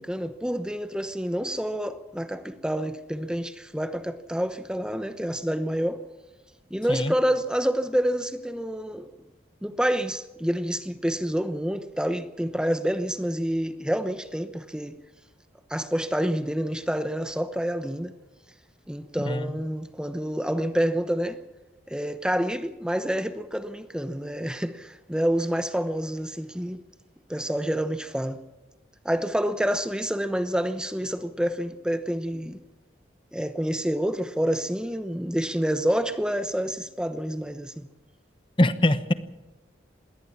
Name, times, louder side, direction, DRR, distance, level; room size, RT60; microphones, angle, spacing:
voice 1, 0.0-6.0 6.7-9.1 9.6-15.0 15.7-18.1 18.9-21.4 21.9-26.8 27.3-28.4 29.0-32.6 33.3-37.9, equal, 5° right, 0.9 m, -28 dB
voice 2, 38.6-39.1, left 1 dB, 30° left, 1.0 m, -22 dB
21.0 x 17.5 x 7.2 m
head